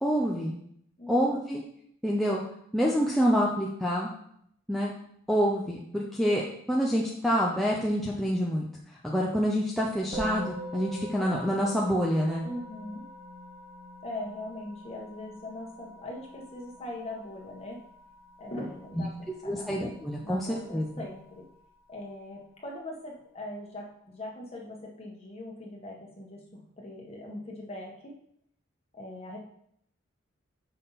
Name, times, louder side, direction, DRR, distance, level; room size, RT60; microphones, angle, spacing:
voice 1, 0.0-0.5 1.1-1.6 2.0-2.4 2.7-4.1 4.7-4.9 5.3-6.4 6.7-8.7 9.0-12.4 19.0-19.1 19.4-20.5 20.7-20.9, equal, ahead, -4 dB, 0.6 m, -27 dB
voice 2, 1.0-1.4 12.4-13.0 14.0-17.8 18.4-19.1 19.4-19.8 20.2-21.5 21.9-28.1 28.9-29.4, left 1 dB, 30° left, -2 dB, 1.5 m, -41 dB
Musical instrument, 10.1-19.6, equal, 30° right, 1.7 m, -42 dB
5.6 x 5.6 x 4.1 m, 0.68 s
head